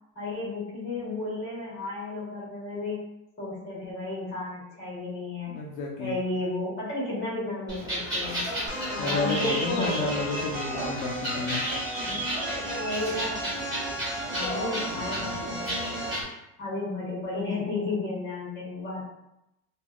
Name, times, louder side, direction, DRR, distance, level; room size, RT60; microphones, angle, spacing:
voice 1, 0.1-3.0 3.4-5.6 6.0-8.4 8.9-10.1 12.0-12.2 12.7-13.4 14.3-15.7 16.6-19.0, left 2 dB, 30° left, -6 dB, 1.3 m, -33 dB
voice 2, 5.5-6.2 9.0-11.6, left 3 dB, 70° left, -2 dB, 0.5 m, -31 dB
sound 1, 7.7-16.2, equal, 10° right, 1.1 m, -33 dB
sound 2, 8.7-16.3, equal, 45° right, 0.8 m, -35 dB
3.2 x 2.3 x 2.3 m, 0.87 s
cardioid pair, 160°, 38 cm